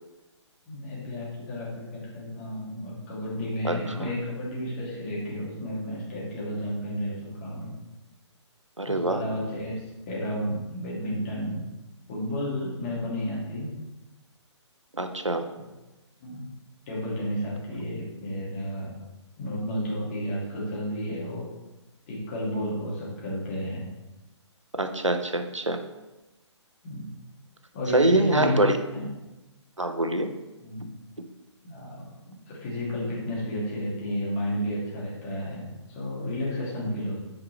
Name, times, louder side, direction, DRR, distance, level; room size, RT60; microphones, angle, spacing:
voice 1, 0.7-7.7 8.9-9.8 10.1-11.6 12.1-13.7 15.4-15.7 16.2-16.4 16.9-18.9 19.4-21.5 22.1-23.8 26.8-27.0 27.7-28.6 28.9-29.1 30.6-30.8 31.6-37.2, equal, 30° left, -6 dB, 2.5 m, -32 dB
voice 2, 3.6-4.1 8.8-9.2 14.9-15.4 24.7-25.8 27.9-28.8 29.8-30.3, right 1 dB, 85° right, 8 dB, 0.7 m, -24 dB
8.7 x 5.2 x 3.2 m, 1.0 s
figure-of-eight pair, 130°, 15 cm